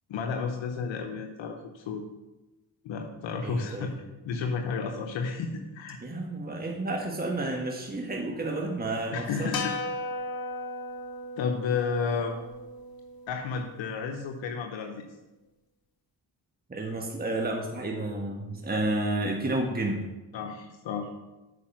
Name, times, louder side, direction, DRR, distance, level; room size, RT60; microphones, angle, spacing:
voice 1, 0.1-2.0 2.8-3.9 4.2-6.0 9.1-9.7 11.4-12.4 13.3-15.0 20.3-21.1, left 5 dB, 70° left, 4 dB, 1.0 m, -32 dB
voice 2, 3.4-3.9 6.0-9.6 16.7-20.1, right 2 dB, 20° right, 1 dB, 1.5 m, -31 dB
sound 1, 9.5-13.9, left 2 dB, 50° left, 1.3 m, -36 dB
8.3 x 5.1 x 6.0 m, 1.1 s
hypercardioid pair, 45°, 46 cm